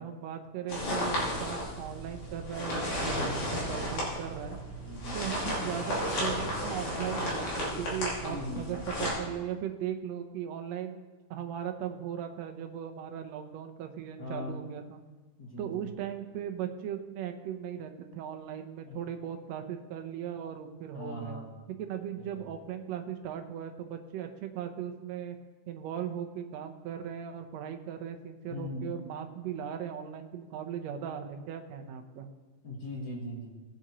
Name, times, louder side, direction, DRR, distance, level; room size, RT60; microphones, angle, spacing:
voice 1, 0.0-4.6 5.1-11.0 11.3-15.0 15.6-21.4 21.8-25.4 25.7-32.3, right 9 dB, 70° right, 5 dB, 1.7 m, -38 dB
sound 1, 0.7-9.1, equal, 60° left, 3.7 m, -33 dB
voice 2, 3.0-3.3 4.8-5.2 8.3-8.7 14.2-14.6 15.4-15.9 18.8-19.0 20.9-21.5 22.3-22.4 28.5-29.0 32.6-33.5, left 1 dB, 40° left, -2 dB, 1.3 m, -39 dB
18.5 x 7.4 x 3.0 m, 1.3 s
omnidirectional pair, 3.8 m